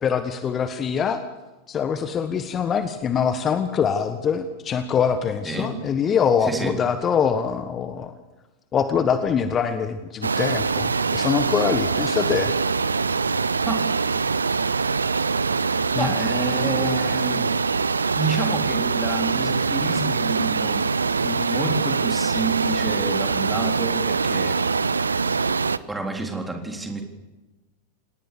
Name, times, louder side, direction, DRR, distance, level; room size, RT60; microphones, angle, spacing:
voice 1, 0.0-1.2 1.7-8.1 8.7-12.5 15.9-16.2, left 7 dB, 25° left, 10 dB, 1.4 m, -24 dB
voice 2, 5.4-5.7 6.4-6.8 13.7-13.9 15.9-17.5 18.2-20.9 21.2-24.7 25.6-27.0, right 2 dB, 5° right, 3 dB, 3.9 m, -29 dB
sound 1, 10.2-25.8, right 4 dB, 75° right, 0.7 m, -23 dB
28.0 x 18.5 x 7.0 m, 1.1 s
figure-of-eight pair, 90°, 0 cm